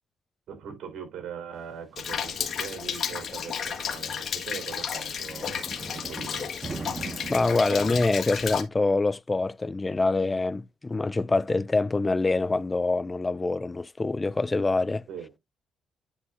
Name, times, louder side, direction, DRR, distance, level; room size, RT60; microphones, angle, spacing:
voice 1, 0.5-5.6 5.9-6.5 15.1-15.3, right 7 dB, 75° right, 3.6 m, -41 dB
sound 1, 1.6-3.9 4.5-4.6 5.2-8.1, right 3 dB, 30° right, 1.5 m, -40 dB
Rain, 2.0-8.6, left 7 dB, 55° left, 1.6 m, -33 dB
voice 2, 7.3-15.1, left 3 dB, 20° left, 0.3 m, -25 dB
9.9 x 5.7 x 2.6 m
cardioid pair, 90°, 0 cm